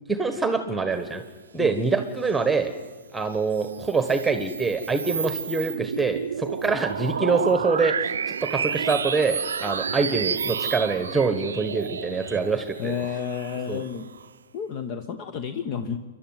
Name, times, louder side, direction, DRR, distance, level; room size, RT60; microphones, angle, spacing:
voice 1, 0.1-1.2 1.5-2.7 3.1-12.9 13.7-13.8, right 4 dB, 5° right, 9 dB, 1.4 m, -25 dB
sound 1, 3.3-14.3, right 7 dB, 70° right, 0.6 m, -31 dB
voice 2, 12.8-14.1 14.5-16.0, left 7 dB, 40° left, 9 dB, 1.2 m, -31 dB
29.0 x 11.5 x 9.5 m, 1.5 s
figure-of-eight pair, 105°, 0 cm